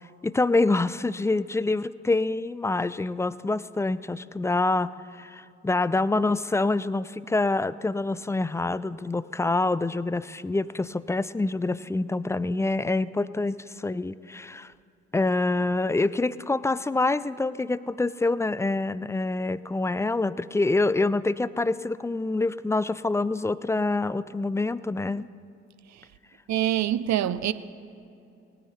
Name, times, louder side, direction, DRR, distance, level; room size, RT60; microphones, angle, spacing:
voice 1, 0.2-14.7 15.1-25.3, left 2 dB, 10° left, 0.3 m, -26 dB
voice 2, 26.5-27.5, right 12 dB, 55° right, 0.7 m, -25 dB
18.5 x 9.6 x 4.1 m
hypercardioid pair, 45°, 33 cm